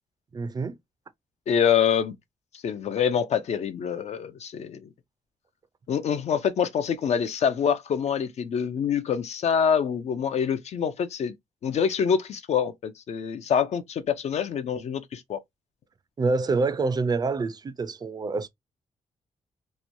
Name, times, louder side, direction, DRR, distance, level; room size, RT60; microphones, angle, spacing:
voice 1, 0.3-0.8 16.2-18.5, right 3 dB, 35° right, 0.4 m, -26 dB
voice 2, 1.5-2.2 2.6-4.9 5.9-11.3 11.6-15.4, left 7 dB, 65° left, 0.5 m, -25 dB
3.0 x 2.2 x 2.5 m
cardioid pair, 90°, 12 cm